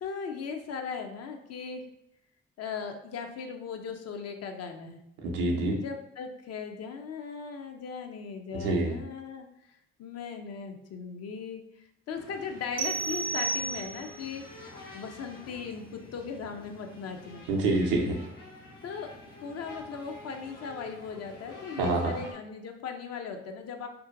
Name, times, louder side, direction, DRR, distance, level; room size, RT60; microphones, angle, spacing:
voice 1, 0.0-1.9 2.6-5.0 5.7-14.4 14.9-17.4 18.8-19.1 19.4-23.9, left 6 dB, 55° left, 5 dB, 0.5 m, -38 dB
voice 2, 5.2-5.8 8.5-9.0 17.5-18.2 21.8-22.2, right 2 dB, 90° right, 1 dB, 0.5 m, -27 dB
sound 1, 12.1-22.3, left 2 dB, 80° left, 1.0 m, -48 dB
sound 2, 12.8-14.3, right 4 dB, 30° right, 0.4 m, -32 dB
2.6 x 2.1 x 2.5 m, 0.82 s
hypercardioid pair, 45°, 30 cm